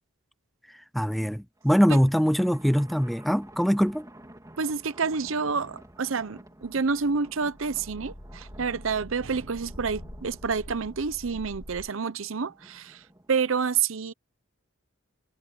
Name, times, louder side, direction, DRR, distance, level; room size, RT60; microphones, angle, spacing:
voice 1, 0.9-4.1, equal, ahead, 0.3 m, -23 dB
Thunder, 1.6-13.3, right 1 dB, 15° right, 3.0 m, -51 dB
voice 2, 4.6-13.0 13.3-14.1, right 5 dB, 75° right, 0.8 m, -28 dB
sound 1, 6.6-11.9, equal, 65° left, 7.0 m, -45 dB
head